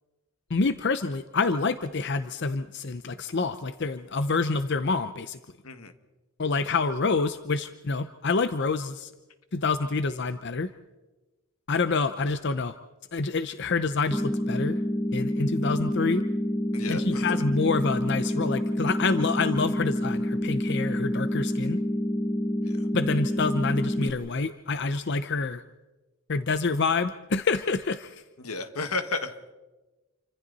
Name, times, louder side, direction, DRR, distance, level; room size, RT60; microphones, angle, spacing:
voice 1, 0.5-5.4 6.4-9.1 9.5-10.7 11.7-12.7 13.1-14.8 15.1-16.2 16.9-21.8 22.9-25.6 26.3-28.2, left 4 dB, 50° left, 11 dB, 0.7 m, -27 dB
sound 1, 14.1-24.1, equal, 10° left, 0.8 m, -28 dB
voice 2, 16.7-17.3 22.6-22.8 28.4-29.3, left 3 dB, 85° left, 8 dB, 1.8 m, -33 dB
28.0 x 25.5 x 4.1 m, 1.1 s
head